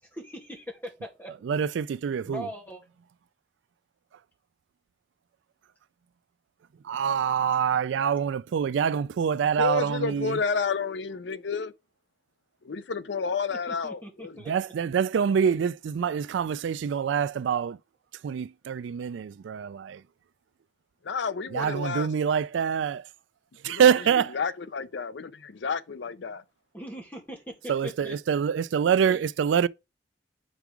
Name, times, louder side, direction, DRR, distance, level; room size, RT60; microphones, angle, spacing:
voice 1, 0.0-1.5 2.2-2.8 13.5-14.7 26.7-28.1 29.0-29.2, equal, 10° left, 2.0 m, -41 dB
voice 2, 1.4-2.5 6.8-10.4 14.5-17.8 18.2-20.0 21.5-23.1 23.6-24.3 27.7-29.7, right 7 dB, 85° right, 0.3 m, -25 dB
voice 3, 9.6-11.7 12.6-14.4 21.0-22.1 23.6-23.8 24.3-26.4, left 5 dB, 75° left, 0.6 m, -30 dB
5.3 x 4.6 x 6.0 m
head